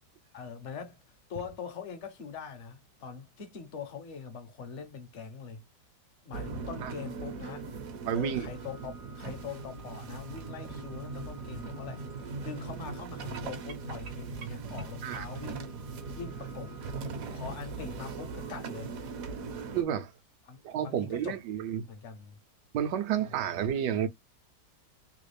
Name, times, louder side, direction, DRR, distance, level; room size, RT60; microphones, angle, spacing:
voice 1, 0.3-1.0 1.3-5.6 6.2-7.7 8.1-12.0 12.4-15.8 16.1-16.7 17.3-18.9 20.5-21.4 21.9-22.3 23.1-23.3, left 6 dB, 55° left, 0.9 m, -42 dB
sound 1, 6.3-19.8, right 4 dB, 60° right, 1.1 m, -40 dB
voice 2, 8.1-8.5 15.0-15.2 19.7-20.1 20.6-21.8 22.7-24.1, right 9 dB, 75° right, 1.2 m, -30 dB
3.1 x 2.4 x 3.2 m
omnidirectional pair, 1.9 m